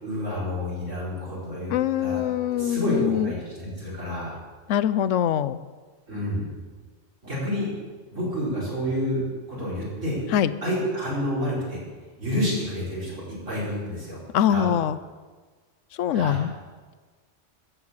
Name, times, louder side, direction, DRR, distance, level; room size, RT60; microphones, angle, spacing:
voice 1, 0.0-1.7 2.0-4.4 6.1-6.5 7.2-7.7 8.1-9.2 9.5-10.2 10.6-11.8 12.2-14.2 14.5-14.7 16.1-16.4, left 1 dB, 85° right, -7 dB, 5.6 m, -29 dB
voice 2, 1.7-3.3 4.7-5.6 10.3-10.5 14.3-15.0 16.0-16.5, left 10 dB, 85° left, 14 dB, 1.0 m, -23 dB
14.0 x 7.8 x 7.3 m, 1.4 s
omnidirectional pair, 1.3 m